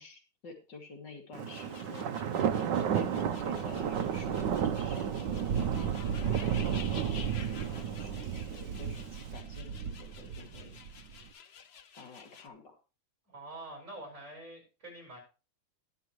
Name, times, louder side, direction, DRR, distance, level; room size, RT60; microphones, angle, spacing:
voice 1, 0.0-2.1 2.6-5.2 5.8-6.4 7.4-10.7 11.9-12.8, left 4 dB, 60° left, 2 dB, 3.2 m, -50 dB
Thunder, 1.3-11.2, right 8 dB, 65° right, 1.4 m, -32 dB
sound 1, 1.5-12.5, left 7 dB, 85° left, 0.5 m, -51 dB
voice 2, 13.3-15.2, right 2 dB, 35° right, 2 dB, 5.5 m, -46 dB
20.5 x 6.9 x 3.1 m, 0.33 s
omnidirectional pair, 2.2 m